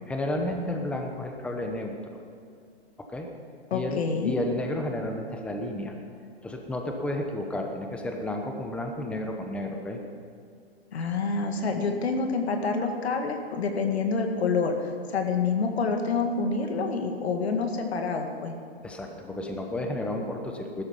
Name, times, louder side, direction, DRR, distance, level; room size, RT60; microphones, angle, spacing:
voice 1, 0.1-2.0 3.0-3.3 3.7-5.9 6.4-10.0 18.8-20.8, left 1 dB, 5° left, 2 dB, 1.0 m, -32 dB
voice 2, 3.7-4.3 10.9-18.6, left 4 dB, 80° left, 4 dB, 2.2 m, -27 dB
15.0 x 12.5 x 5.4 m, 2.3 s
hypercardioid pair, 140°, 32 cm